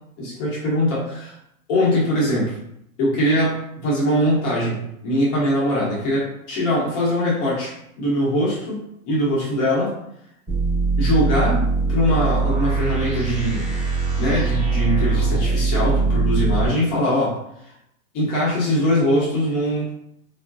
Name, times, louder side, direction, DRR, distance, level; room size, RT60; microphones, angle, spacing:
voice 1, 0.2-1.0 1.7-2.6 3.0-9.9 11.0-11.6 11.9-13.7 14.2-17.4 18.1-19.9, equal, 15° left, -5 dB, 0.3 m, -22 dB
sound 1, 10.5-16.7, right 4 dB, 15° right, 0.7 m, -21 dB
3.4 x 2.2 x 2.4 m, 0.77 s
hypercardioid pair, 135°, 43 cm